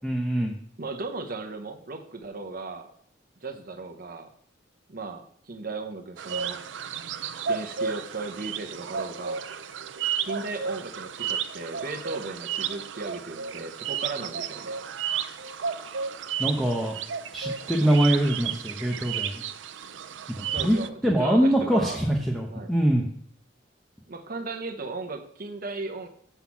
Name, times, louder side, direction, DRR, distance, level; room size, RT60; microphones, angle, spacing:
voice 1, 0.0-0.6 15.4-15.6 16.4-17.0 17.3-19.4 20.4-20.8 21.0-23.1, right 1 dB, ahead, -1 dB, 0.9 m, -24 dB
voice 2, 0.8-2.9 3.4-4.3 4.9-6.6 7.5-9.4 10.2-14.8 20.5-22.0 22.5-22.7 24.1-26.1, right 3 dB, 50° right, 6 dB, 0.9 m, -36 dB
Meadow Cuckoo In Background And Birds High Pitch Mono Loop, 6.2-20.9, right 7 dB, 90° right, 0.5 m, -33 dB
8.1 x 5.6 x 5.9 m, 0.65 s
head